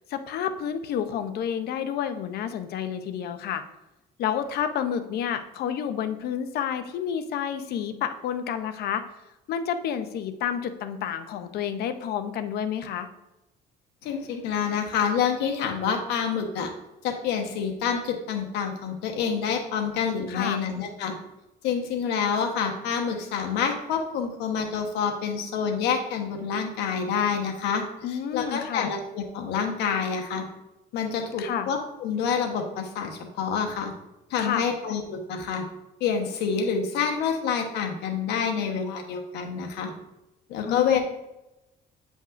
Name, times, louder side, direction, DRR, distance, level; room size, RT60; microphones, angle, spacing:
voice 1, 0.1-3.6 4.2-9.0 9.5-13.1 20.3-20.6 28.0-28.9 31.4-31.7 34.4-34.7 40.6-41.0, left 8 dB, 70° left, 9 dB, 0.7 m, -30 dB
voice 2, 14.0-16.7 17.0-21.2 21.6-30.4 30.9-33.9 34.3-35.6 36.0-39.9 40.5-41.0, left 6 dB, 85° left, 3 dB, 1.1 m, -27 dB
9.0 x 5.3 x 2.5 m, 0.96 s
cardioid pair, 110°, 17 cm